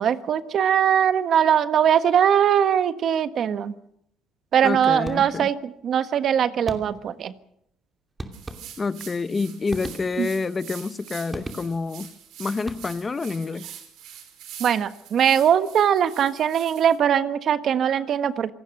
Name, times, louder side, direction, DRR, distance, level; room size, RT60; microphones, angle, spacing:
voice 1, 0.0-3.7 4.5-7.3 10.2-10.3 14.6-18.5, right 9 dB, 55° right, 1.4 m, -21 dB
voice 2, 4.6-5.5 8.8-12.1 12.4-13.7, left 4 dB, 25° left, 1.0 m, -28 dB
sound 1, 5.0-5.6 6.7-7.2 8.2-9.1 9.7-10.5 11.3-12.0 12.6-13.2, right 2 dB, 15° right, 2.7 m, -38 dB
sound 2, 8.3-17.0, right 9 dB, 75° right, 5.3 m, -44 dB
26.5 x 18.5 x 6.6 m
cardioid pair, 110°, 0 cm